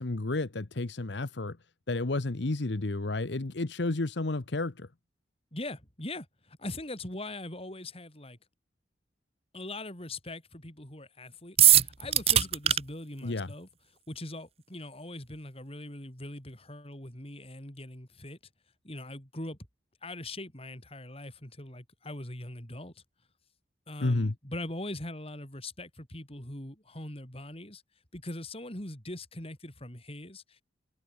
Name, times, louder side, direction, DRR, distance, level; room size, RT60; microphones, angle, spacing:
voice 1, 0.0-1.6 1.9-4.9 13.2-13.5 24.0-24.3, left 2 dB, 70° left, 1.0 m, -31 dB
voice 2, 5.5-8.4 9.5-13.7 14.1-18.4 18.8-19.6 20.0-23.0 23.9-27.8 28.1-30.6, left 1 dB, 30° left, 5.4 m, -41 dB
sound 1, 11.6-12.8, right 11 dB, 35° right, 0.8 m, -20 dB
head